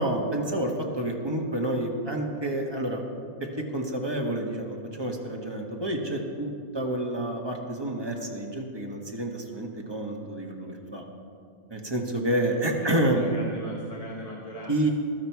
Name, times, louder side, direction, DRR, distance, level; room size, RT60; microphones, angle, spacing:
voice 1, 0.0-3.0 3.4-11.0 11.7-13.3 14.7-14.9, right 1 dB, 20° right, 0 dB, 1.4 m, -29 dB
voice 2, 12.5-14.8, equal, 30° left, -2 dB, 1.2 m, -40 dB
15.5 x 12.0 x 4.7 m, 2.4 s
omnidirectional pair, 1.5 m